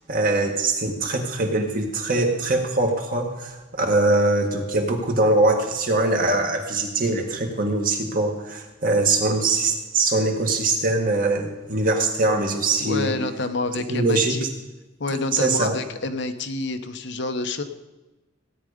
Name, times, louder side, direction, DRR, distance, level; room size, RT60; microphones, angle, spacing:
voice 1, 0.1-13.2 13.9-14.5 15.3-15.7, right 2 dB, 45° right, 2 dB, 1.9 m, -22 dB
voice 2, 12.8-14.4 15.0-17.6, left 3 dB, 65° left, 8 dB, 1.0 m, -28 dB
16.5 x 9.7 x 5.1 m, 1.1 s
head